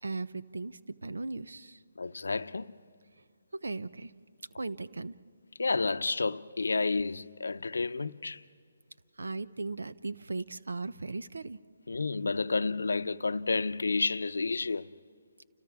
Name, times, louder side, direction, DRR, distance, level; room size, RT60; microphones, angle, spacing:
voice 1, 0.0-1.8 3.5-4.1 4.6-5.1 9.2-11.6, right 3 dB, 90° right, 0.7 m, -37 dB
voice 2, 2.0-2.7 5.6-8.4 11.9-14.9, left 3 dB, 85° left, 0.6 m, -30 dB
29.5 x 29.0 x 3.6 m
hypercardioid pair, 155°, 0 cm